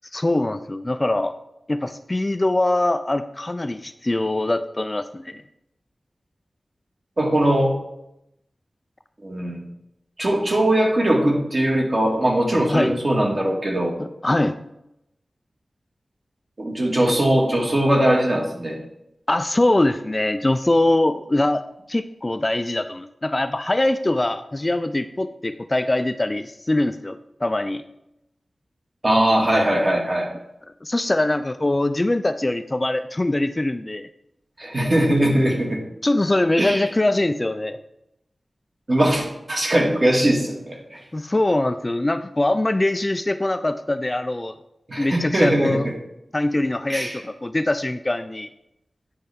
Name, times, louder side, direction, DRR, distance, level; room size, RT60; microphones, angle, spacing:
voice 1, 0.1-1.4 1.7-5.4 12.7-13.0 14.0-14.5 19.3-21.6 21.9-27.8 30.8-34.1 36.0-37.8 41.1-44.5 45.0-45.9 46.3-48.5, left 1 dB, 25° left, 10 dB, 0.3 m, -22 dB
voice 2, 7.2-7.8 9.2-9.6 10.2-13.9 16.6-18.8 29.0-30.3 34.6-35.8 36.6-36.9 38.9-41.0 44.9-45.8 46.9-47.2, right 1 dB, 45° right, -1 dB, 1.9 m, -20 dB
9.5 x 5.4 x 3.5 m, 0.84 s
wide cardioid pair, 85°, 0 cm